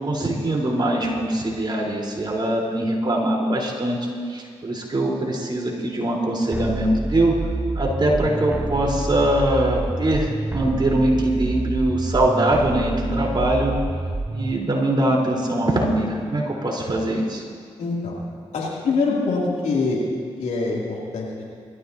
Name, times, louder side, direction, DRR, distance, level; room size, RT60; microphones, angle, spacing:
voice 1, 0.0-4.0 4.3-7.3 7.7-13.8 14.3-17.4, right 1 dB, 40° right, -3 dB, 4.4 m, -22 dB
sound 1, 6.5-14.5, right 2 dB, 15° right, 0.6 m, -28 dB
voice 2, 17.8-18.2 18.5-20.0 20.4-21.4, left 3 dB, 85° left, -4 dB, 3.2 m, -24 dB
23.0 x 14.0 x 2.9 m, 2.2 s
supercardioid pair, 45°, 12 cm